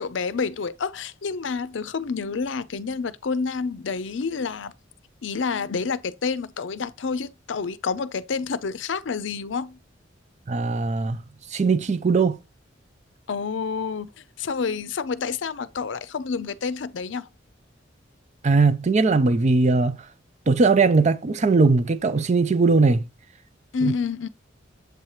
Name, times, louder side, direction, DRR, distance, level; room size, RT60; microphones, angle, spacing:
voice 1, 0.0-4.7 5.2-9.8 13.3-14.1 14.4-17.3 23.7-24.3, left 5 dB, 70° left, 0.5 m, -28 dB
voice 2, 10.5-11.2 11.5-12.4 18.4-20.0 20.5-23.0 23.8-23.9, right 4 dB, 35° right, 0.4 m, -19 dB
7.9 x 2.9 x 4.7 m
head